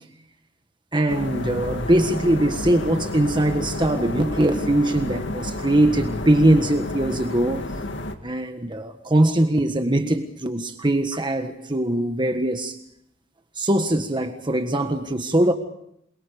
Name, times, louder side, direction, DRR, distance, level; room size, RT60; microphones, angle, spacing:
voice 1, 0.9-7.7 8.2-12.8 13.5-15.5, right 1 dB, 25° right, 7 dB, 1.5 m, -21 dB
sound 1, 1.1-8.2, left 1 dB, 65° left, 2.3 m, -31 dB
28.5 x 23.0 x 5.1 m, 0.76 s
head